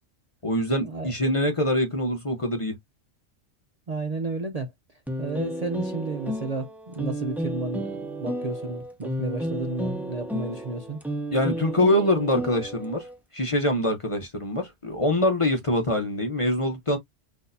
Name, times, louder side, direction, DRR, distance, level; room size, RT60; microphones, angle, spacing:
voice 1, 0.4-2.8 11.3-13.1 13.3-17.0, left 1 dB, 30° left, 0.8 m, -24 dB
voice 2, 3.9-11.0, right 3 dB, 45° right, 0.6 m, -32 dB
sound 1, 5.1-13.2, equal, ahead, 0.6 m, -32 dB
6.2 x 2.7 x 2.6 m
omnidirectional pair, 1.2 m